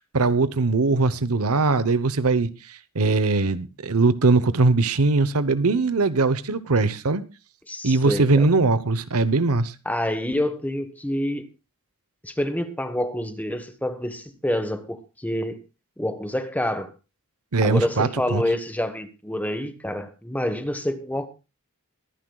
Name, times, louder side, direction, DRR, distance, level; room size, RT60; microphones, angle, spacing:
voice 1, 0.1-7.2 7.8-9.7 17.5-18.4, right 3 dB, 80° right, 0.9 m, -21 dB
voice 2, 7.7-8.5 9.8-11.5 12.2-15.6 16.0-16.9 17.6-21.3, left 1 dB, 5° left, 1.2 m, -27 dB
23.0 x 10.0 x 2.3 m
head